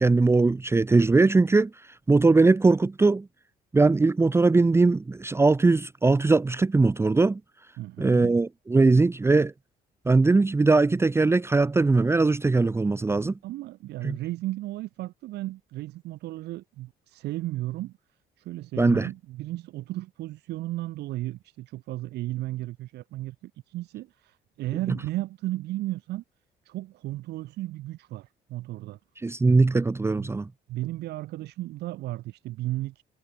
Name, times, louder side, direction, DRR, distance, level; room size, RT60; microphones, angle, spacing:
voice 1, 0.0-1.7 2.1-3.2 3.7-7.4 8.0-9.5 10.1-13.3 14.0-14.2 18.8-19.1 29.2-30.5, right 3 dB, 15° right, 0.8 m, -20 dB
voice 2, 7.8-8.4 13.4-17.9 18.4-26.2 26.6-29.0 30.2-30.3 30.7-33.0, right 16 dB, 80° right, 5.0 m, -34 dB
cardioid pair, 110°, 17 cm